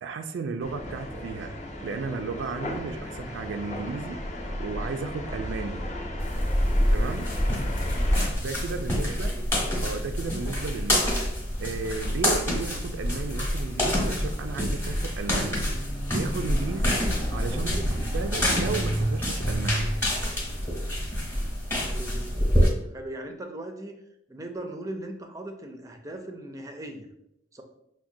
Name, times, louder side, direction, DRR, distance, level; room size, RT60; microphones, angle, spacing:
voice 1, 0.0-1.5 1.8-4.2 4.6-5.9 6.9-7.3 8.4-9.3 9.8-11.2 11.6-15.7 16.1-17.0 17.3-20.0, right 4 dB, 85° right, 6 dB, 0.3 m, -34 dB
sound 1, 0.6-8.3, left 1 dB, 40° left, 0.6 m, -32 dB
sound 2, 6.2-22.7, equal, 15° left, 0.9 m, -27 dB
voice 2, 8.5-9.5 17.5-17.8 21.8-22.3 22.6-24.0 24.3-27.1 27.5-27.6, right 1 dB, 15° right, 4 dB, 0.4 m, -39 dB
5.9 x 2.2 x 2.6 m, 0.81 s
head